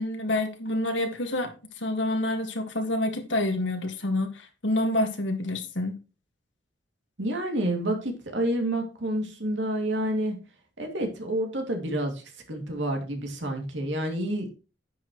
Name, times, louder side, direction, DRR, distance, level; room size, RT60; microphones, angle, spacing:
voice 1, 0.0-1.5 1.8-6.0, left 1 dB, 75° left, 1.9 m, -28 dB
voice 2, 7.2-10.4 10.8-14.5, right 1 dB, 70° right, 2.6 m, -29 dB
10.5 x 8.6 x 3.1 m
head